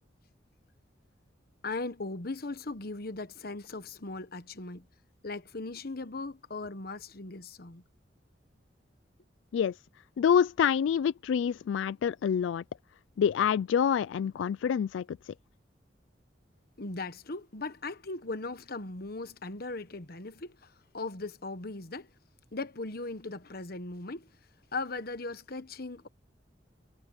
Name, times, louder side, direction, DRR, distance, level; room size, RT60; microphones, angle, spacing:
voice 1, 1.6-4.9 5.2-7.8 16.8-22.1 22.5-24.3 24.7-26.1, left 3 dB, 55° left, 1.2 m, -38 dB
voice 2, 10.2-12.6 13.2-15.2, left 8 dB, 85° left, 0.3 m, -27 dB
head